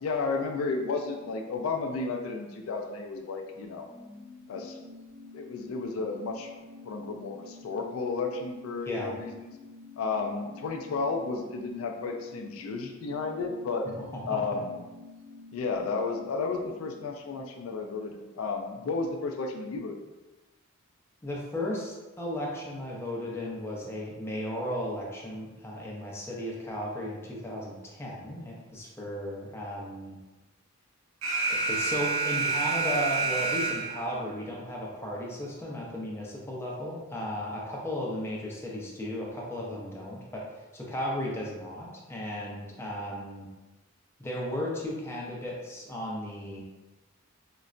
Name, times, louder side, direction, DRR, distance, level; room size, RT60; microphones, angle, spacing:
voice 1, 0.0-3.9 4.5-4.8 5.3-6.5 6.8-9.5 10.0-13.9 14.3-14.8 15.5-20.0, left 4 dB, 75° left, 3 dB, 0.3 m, -32 dB
sound 1, 3.4-18.5 18.8-18.9, left 3 dB, 55° right, 0.8 m, -49 dB
voice 2, 21.2-30.2 31.5-43.5 44.2-46.6, left 1 dB, 10° left, -4 dB, 0.5 m, -35 dB
Alarm, 31.2-34.2, right 4 dB, 85° right, 0.6 m, -28 dB
3.8 x 2.1 x 2.4 m, 1.1 s
head